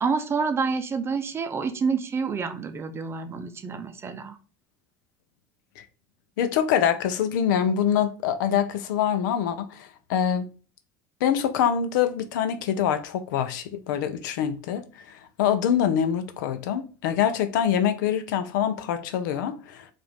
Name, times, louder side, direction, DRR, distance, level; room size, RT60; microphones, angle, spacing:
voice 1, 0.0-4.4, right 5 dB, 25° right, 0.6 m, -28 dB
voice 2, 6.4-10.5 11.2-19.9, left 9 dB, 90° left, 0.6 m, -25 dB
4.9 x 2.6 x 3.4 m
supercardioid pair, 115°, 10 cm